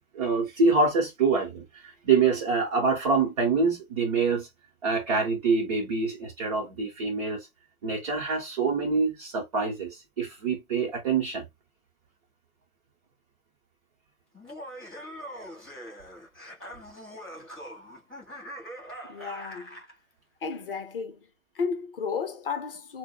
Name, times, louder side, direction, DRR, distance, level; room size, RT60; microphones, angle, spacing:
voice 1, 0.1-4.5 4.8-7.5 7.8-11.4, right 4 dB, 25° right, 0.9 m, -25 dB
Laughter, 14.3-19.9, equal, ahead, 0.7 m, -42 dB
voice 2, 19.1-19.8 20.4-21.3 21.5-23.0, left 5 dB, 40° left, 0.7 m, -33 dB
6.3 x 2.1 x 2.3 m
figure-of-eight pair, 130°, 42 cm